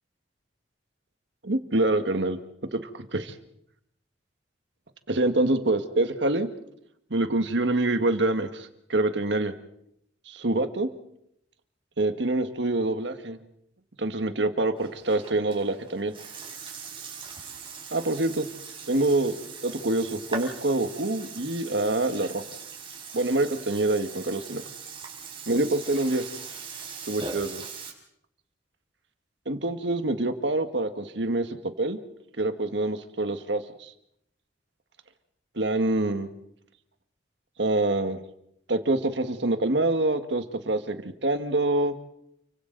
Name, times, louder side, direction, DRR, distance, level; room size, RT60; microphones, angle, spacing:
voice 1, 1.4-2.4 2.7-3.3 5.1-6.5 7.1-9.5 10.3-10.9 12.0-13.4 14.0-16.1 17.9-18.5 18.9-19.3 19.6-22.4 23.1-24.6 25.5-26.2 27.1-27.6 29.4-32.0 32.4-33.9 35.5-36.3 37.6-38.2 38.7-41.9, right 2 dB, 75° right, 8 dB, 1.7 m, -26 dB
Burping eructation, 14.8-27.9, right 5 dB, 30° right, 4.4 m, -40 dB
29.5 x 24.5 x 4.0 m, 0.75 s
head